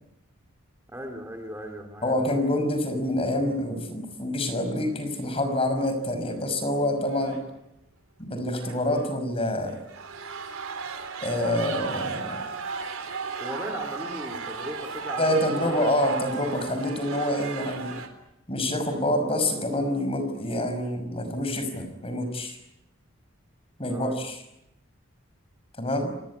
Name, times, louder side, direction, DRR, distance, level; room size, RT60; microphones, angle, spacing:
voice 1, 0.9-2.5 13.4-15.9 23.9-24.2, equal, 10° right, 3 dB, 2.8 m, -38 dB
voice 2, 2.0-7.4 8.2-9.8 11.2-12.4 15.2-18.0 18.5-22.6 23.8-24.4 25.8-26.1, left 1 dB, 25° left, 8 dB, 5.7 m, -27 dB
sound 1, 5.8-6.1 6.3-6.4 7.0-7.4 8.6-9.1 9.7-18.1, right 5 dB, 80° right, 4.0 m, -35 dB
29.5 x 19.0 x 9.9 m, 0.85 s
head